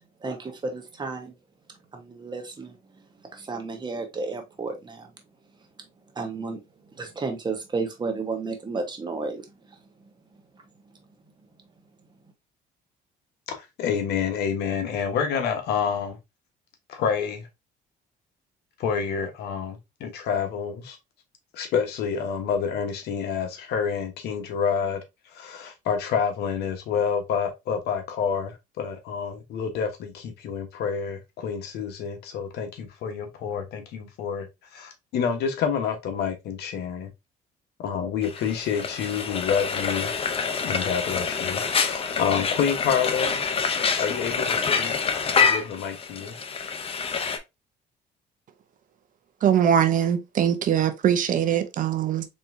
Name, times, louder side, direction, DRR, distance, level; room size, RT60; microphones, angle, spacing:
voice 1, 0.0-1.3 1.9-3.0 3.3-5.1 6.1-9.4, right 4 dB, 25° right, 1.2 m, -32 dB
voice 2, 13.5-16.2 16.9-17.5 18.8-21.0 21.5-25.0 25.3-37.1 37.8-40.1 40.6-43.4 43.8-45.0 45.4-46.4, left 7 dB, 75° left, 1.1 m, -28 dB
Frying (food), 38.2-47.4, left 5 dB, 35° left, 0.7 m, -26 dB
voice 3, 49.4-52.2, right 9 dB, 50° right, 0.7 m, -22 dB
4.3 x 3.4 x 2.6 m
cardioid pair, 110°, 17 cm